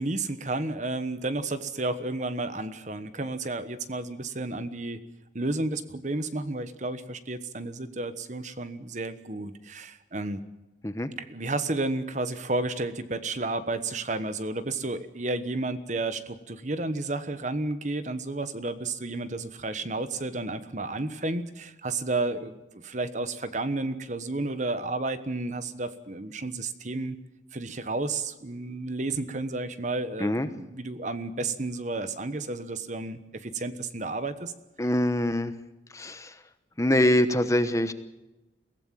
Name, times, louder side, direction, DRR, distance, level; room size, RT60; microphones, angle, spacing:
voice 1, 0.0-5.0 5.3-10.4 11.2-27.2 27.5-34.5, right 2 dB, 40° right, 12 dB, 1.2 m, -32 dB
voice 2, 34.8-35.5 35.9-36.4 36.8-37.9, left 1 dB, 15° left, 11 dB, 1.0 m, -24 dB
23.0 x 16.5 x 7.6 m, 1.0 s
head